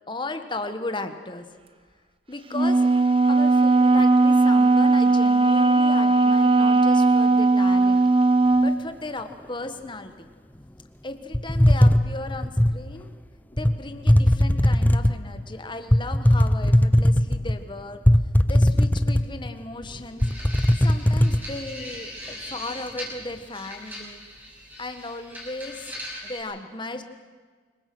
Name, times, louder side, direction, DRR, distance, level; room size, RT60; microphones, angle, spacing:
voice 1, 0.1-1.4 2.3-2.9 3.3-8.0 8.6-10.1 11.0-13.1 13.5-18.0 18.5-20.2 20.8-24.2 24.8-27.0, left 2 dB, 25° left, 8 dB, 1.5 m, -36 dB
Wind instrument woodwind instrument, 2.5-8.8, right 3 dB, 30° right, 1.0 m, -18 dB
sound 1, 11.3-12.8 13.6-13.7 14.1-15.2 15.9-17.6 18.1-19.5 19.8-19.9 20.2-21.4, left 1 dB, 10° left, 0.7 m, -18 dB
sound 2, 20.2-26.4, equal, 10° right, 5.7 m, -40 dB
26.0 x 22.5 x 6.2 m, 1.5 s
head